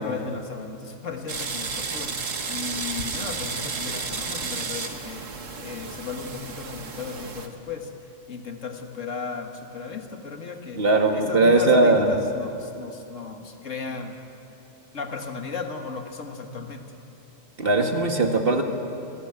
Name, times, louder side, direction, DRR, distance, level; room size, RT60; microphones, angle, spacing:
voice 1, 0.0-7.9 8.3-10.8 11.1-14.1 14.9-16.8, left 5 dB, 80° left, 5 dB, 2.1 m, -35 dB
sound 1, 1.3-7.5, right 4 dB, 90° right, 1.8 m, -32 dB
voice 2, 10.8-12.2 17.6-18.6, right 2 dB, 50° right, 4 dB, 2.0 m, -19 dB
26.0 x 17.0 x 8.9 m, 2.9 s
omnidirectional pair, 1.3 m